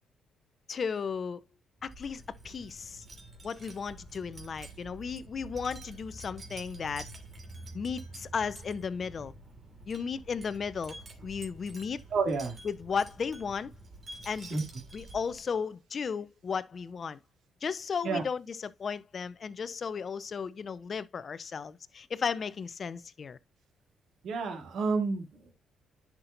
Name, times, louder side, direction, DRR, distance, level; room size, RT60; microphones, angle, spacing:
voice 1, 0.7-1.4 1.8-3.0 3.4-7.1 7.7-9.3 9.9-12.0 12.6-13.7 14.2-14.6 14.9-17.2 17.6-23.4, left 6 dB, 45° left, 0.7 m, -35 dB
Wind chime, 1.8-15.5, right 2 dB, 35° right, 3.0 m, -48 dB
voice 2, 12.1-12.6 14.5-14.6 18.0-18.2 24.2-25.5, right 4 dB, 65° right, 2.6 m, -30 dB
10.5 x 6.0 x 2.6 m
cardioid pair, 90°, 0 cm